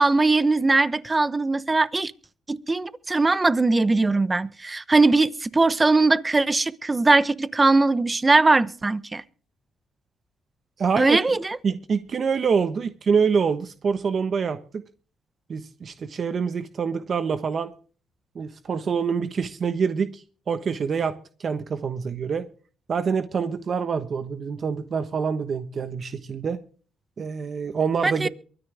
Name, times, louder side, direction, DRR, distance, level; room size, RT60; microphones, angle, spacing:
voice 1, 0.0-2.1 2.5-9.2 11.0-11.6 28.0-28.3, right 3 dB, 20° right, 0.9 m, -20 dB
voice 2, 10.8-11.2 11.6-14.6 15.5-17.7 18.3-22.5 22.9-26.6 27.2-28.3, right 6 dB, 50° right, 1.1 m, -26 dB
23.5 x 10.0 x 3.5 m
cardioid pair, 90°, 0 cm